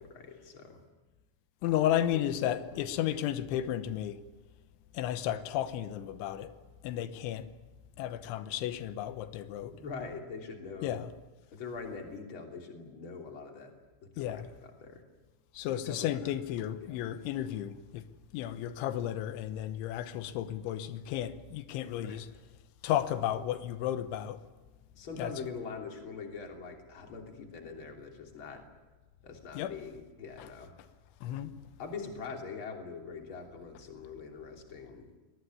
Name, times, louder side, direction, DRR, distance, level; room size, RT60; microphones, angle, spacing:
voice 1, 0.1-0.8 1.7-2.2 9.7-11.0 11.5-13.7 14.0-15.0 15.6-16.4 16.8-17.0 22.0-22.2 25.0-28.6 29.2-30.7 31.8-35.1, left 5 dB, 30° left, 3.2 m, -43 dB
voice 2, 1.6-4.2 4.9-6.5 6.8-7.5 8.0-9.8 10.8-11.1 14.2-14.4 15.5-18.0 18.3-22.3 22.8-24.4 25.2-25.3 29.5-29.7 31.2-31.5, left 11 dB, 90° left, 3.4 m, -33 dB
23.5 x 19.0 x 9.5 m
omnidirectional pair, 5.2 m